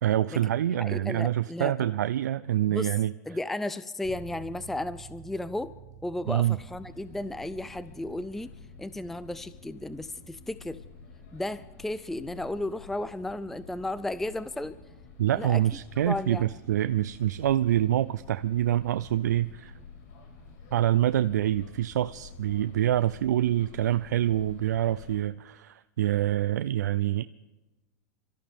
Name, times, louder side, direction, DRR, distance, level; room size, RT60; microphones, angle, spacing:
voice 1, 0.0-3.1 6.3-6.6 15.2-19.8 20.7-27.2, right 12 dB, 90° right, 14 dB, 0.4 m, -26 dB
voice 2, 0.8-1.7 2.7-2.9 3.3-5.7 6.0-8.5 8.8-10.8 11.3-14.8 15.3-15.6 16.1-16.5, left 1 dB, 5° left, 15 dB, 0.4 m, -34 dB
sound 1, 4.0-18.5, right 7 dB, 20° right, 5.3 m, -53 dB
sound 2, 6.4-25.2, left 4 dB, 65° left, 5.4 m, -49 dB
28.0 x 14.0 x 3.6 m, 1.1 s
hypercardioid pair, 125°, 9 cm